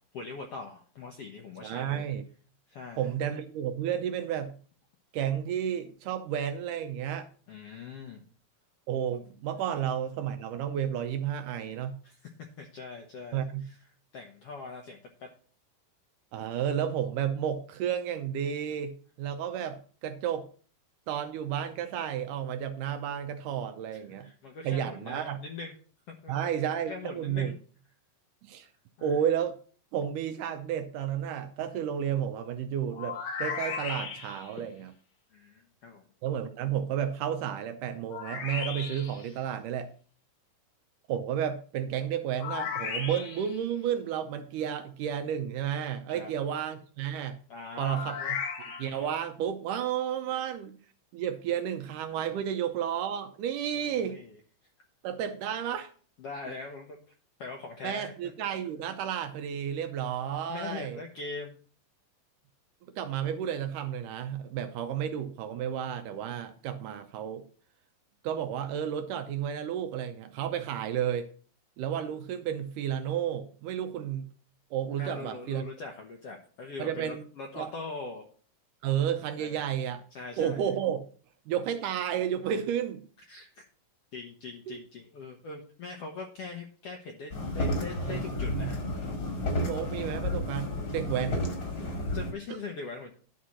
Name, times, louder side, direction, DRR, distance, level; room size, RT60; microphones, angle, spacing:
voice 1, 0.1-2.1 2.7-3.1 7.5-8.2 12.0-12.3 12.6-13.8 14.1-15.3 23.9-25.7 26.1-26.4 26.9-27.5 29.0-29.2 35.3-36.1 46.1-46.3 47.5-48.3 53.7-54.3 56.2-57.0 57.4-58.1 60.5-61.6 75.0-78.2 79.4-79.7 80.1-80.7 83.3-83.6 84.1-88.8 91.8-93.1, left 4 dB, 70° left, 1.4 m, -42 dB
voice 2, 1.6-2.2 3.0-4.5 5.1-7.3 8.9-12.0 13.3-13.6 16.3-20.5 21.1-24.3 24.6-25.4 26.3-27.5 28.4-28.7 29.0-29.6 29.9-34.9 36.2-39.9 41.1-47.4 47.8-48.4 48.8-50.8 51.1-54.2 55.0-55.9 57.8-61.0 63.0-67.5 68.2-71.3 71.8-74.3 74.7-75.7 76.8-77.2 77.6-77.7 78.8-80.0 80.4-81.1 81.5-83.0 84.7-84.8 88.0-88.7 89.6-91.5 92.5-92.6, right 9 dB, 80° right, 2.0 m, -32 dB
sound 1, 32.9-34.6 38.1-39.3 42.4-43.6 47.7-49.1, left 6 dB, 90° left, 3.5 m, -36 dB
sound 2, 87.3-92.3, left 1 dB, 40° left, 1.6 m, -32 dB
11.0 x 4.3 x 6.2 m
omnidirectional pair, 4.1 m